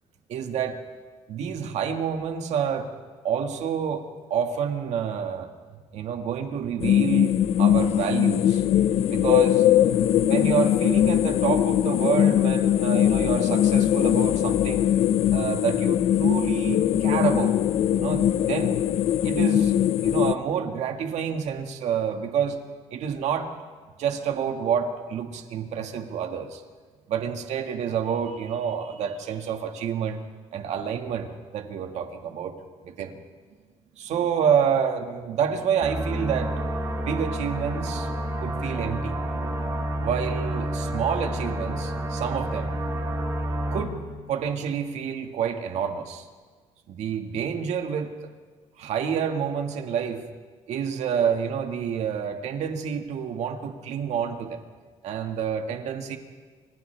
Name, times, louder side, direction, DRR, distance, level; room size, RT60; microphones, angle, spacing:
voice 1, 0.3-0.8 1.3-2.9 3.2-5.5 5.9-8.7 9.1-9.6 10.2-14.9 15.3-17.6 18.0-18.8 19.2-19.7 20.0-22.6 22.9-23.5 24.0-26.6 27.1-30.2 30.5-33.2 34.0-36.6 37.0-38.1 38.4-39.2 40.0-42.8 43.7-46.3 46.9-48.1 48.8-50.3 50.7-54.6 55.0-56.2, right 7 dB, 70° right, 5 dB, 1.9 m, -28 dB
sound 1, 6.8-20.3, left 11 dB, 60° left, 0.6 m, -21 dB
sound 2, 35.8-43.8, right 1 dB, 30° right, 3.1 m, -29 dB
30.0 x 26.0 x 3.4 m, 1.5 s
cardioid pair, 155°, 12 cm